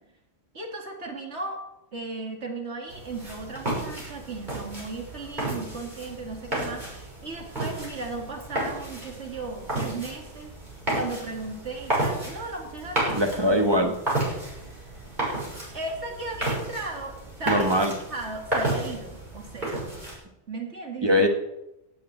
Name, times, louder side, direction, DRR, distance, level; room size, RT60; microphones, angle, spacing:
voice 1, 0.5-1.6 1.9-10.5 10.9-13.4 14.3-14.4 15.7-17.7 18.1-19.8 20.5-21.3, right 3 dB, 65° right, 1 dB, 2.8 m, -36 dB
sound 1, 2.9-20.2, right 1 dB, 40° right, 6.5 m, -32 dB
voice 2, 13.1-14.0 17.5-17.9 21.0-21.3, equal, 20° right, 3 dB, 1.4 m, -21 dB
16.0 x 6.4 x 9.0 m, 0.91 s
omnidirectional pair, 1.2 m